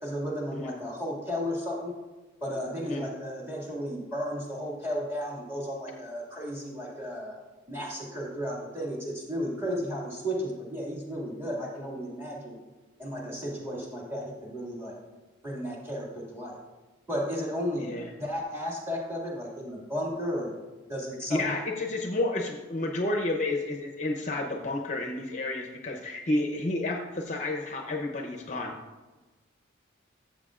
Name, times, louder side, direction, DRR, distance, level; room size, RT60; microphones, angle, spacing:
voice 1, 0.0-1.9 2.4-7.4 7.7-12.6 13.0-15.0 15.4-16.6 17.1-20.5 20.9-21.6, equal, 10° right, -3 dB, 2.1 m, -34 dB
voice 2, 21.3-28.7, left 2 dB, 35° left, 2 dB, 0.7 m, -31 dB
14.0 x 7.5 x 2.5 m, 1.2 s
head